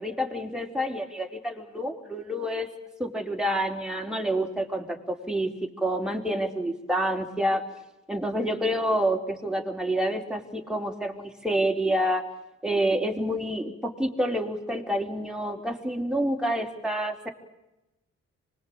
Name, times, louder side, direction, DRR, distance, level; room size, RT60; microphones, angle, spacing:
voice 1, 0.0-2.7 3.0-5.5 5.8-7.6 8.1-12.2 12.6-17.3, right 1 dB, ahead, 2 dB, 4.0 m, -28 dB
25.0 x 20.5 x 8.7 m, 0.95 s
supercardioid pair, 55°, 29 cm